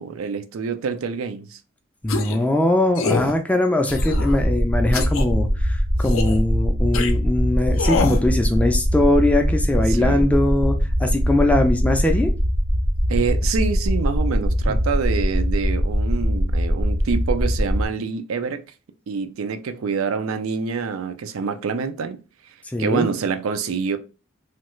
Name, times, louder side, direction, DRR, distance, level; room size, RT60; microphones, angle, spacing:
voice 1, 0.0-1.6 9.9-10.3 13.1-18.6 19.1-22.2 22.8-24.0, right 5 dB, 75° right, 0.4 m, -26 dB
voice 2, 2.0-12.3 14.7-14.8 22.7-23.1, left 1 dB, 5° left, 0.4 m, -21 dB
sound 1, 2.1-2.4 2.9-3.3 3.9-4.4 4.9-5.2 6.0-6.4 6.9-7.1 7.8-8.2, left 4 dB, 70° left, 0.5 m, -25 dB
sound 2, 3.9-17.9, equal, 40° right, 0.6 m, -21 dB
3.2 x 2.3 x 3.0 m
head